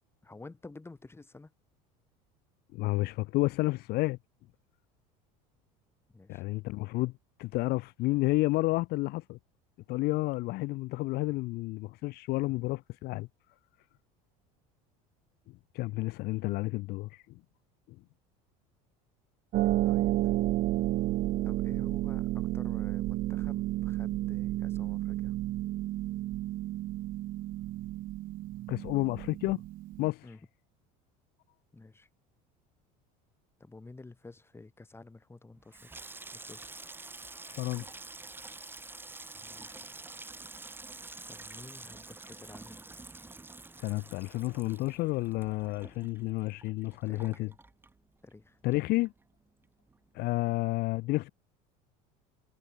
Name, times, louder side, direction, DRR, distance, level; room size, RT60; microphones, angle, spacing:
voice 1, 0.2-1.5 6.1-6.4 19.8-20.3 21.4-25.3 30.2-30.5 31.7-32.1 33.6-36.0 36.3-36.7 39.3-39.9 41.3-42.8 47.1-47.6 48.2-48.6, left 3 dB, 15° left, 8.0 m, -51 dB
voice 2, 2.7-4.2 6.3-7.1 7.4-9.4 9.9-13.3 15.7-17.2 28.7-29.6 30.0-30.2 37.5-37.8 43.8-47.5 48.6-49.1 50.1-51.3, left 20 dB, 60° left, 1.0 m, -30 dB
Harp, 19.5-30.1, right 16 dB, 50° right, 0.8 m, -31 dB
Water tap faucet / Sink (filling or washing), 35.6-48.4 48.7-49.4 49.6-50.0, right 3 dB, 10° right, 2.3 m, -48 dB
supercardioid pair, 110°, 18 cm